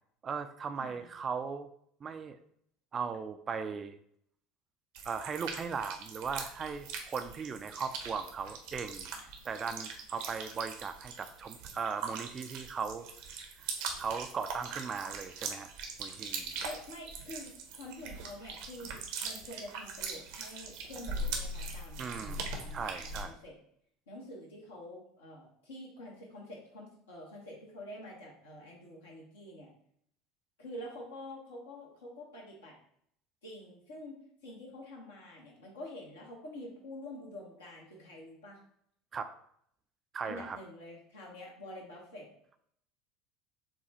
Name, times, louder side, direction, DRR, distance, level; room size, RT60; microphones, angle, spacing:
voice 1, 0.2-1.7 2.0-2.4 2.9-4.0 5.0-9.1 9.5-13.1 13.6-13.7 14.0-15.7 16.0-16.6 22.0-23.3 39.1-39.3 40.1-40.6, right 5 dB, 30° right, 9 dB, 0.3 m, -38 dB
sound 1, 4.9-23.3, right 4 dB, 60° right, 0.7 m, -41 dB
voice 2, 16.6-23.5 24.1-29.7 30.6-32.7 33.4-38.6 40.2-42.3, left 1 dB, 75° left, -3 dB, 1.1 m, -47 dB
6.6 x 2.3 x 2.9 m, 0.67 s
figure-of-eight pair, 70°, 0 cm